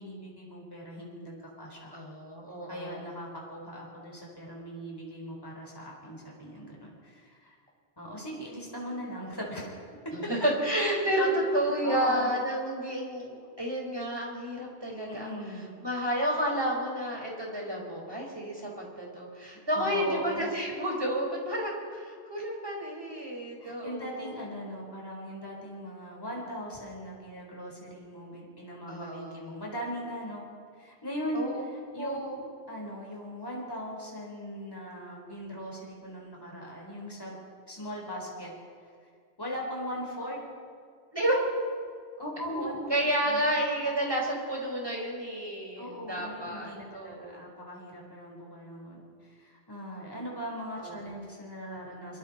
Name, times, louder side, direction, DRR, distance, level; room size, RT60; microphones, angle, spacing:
voice 1, 0.0-2.0 2.7-7.6 8.0-9.7 10.0-10.1 10.8-10.9 11.2-11.3 11.8-12.7 15.0-15.7 19.7-20.5 23.6-30.4 30.7-32.4 32.7-37.4 37.7-38.5 38.8-39.1 39.4-40.4 42.2-42.9 43.2-43.6 45.8-52.2, equal, 20° left, -2 dB, 4.3 m, -39 dB
voice 2, 1.9-3.1 10.1-15.3 15.8-24.3 28.9-29.5 31.3-31.6 32.0-32.4 41.1-41.4 42.4-47.4 50.8-51.0, right 1 dB, 25° right, -2 dB, 5.1 m, -31 dB
25.5 x 24.5 x 4.3 m, 2.1 s
omnidirectional pair, 1.1 m